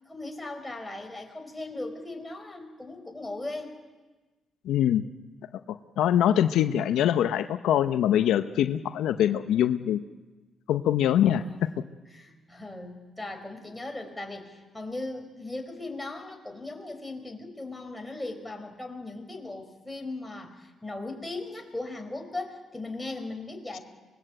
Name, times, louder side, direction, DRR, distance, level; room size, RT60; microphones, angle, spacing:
voice 1, 0.1-3.7 11.3-11.6 12.1-23.8, left 2 dB, 10° left, 3 dB, 4.8 m, -38 dB
voice 2, 4.7-5.0 6.0-10.0 10.7-11.4, left 10 dB, 80° left, 9 dB, 0.8 m, -23 dB
25.5 x 20.0 x 8.0 m, 1.2 s
cardioid pair, 90°, 0 cm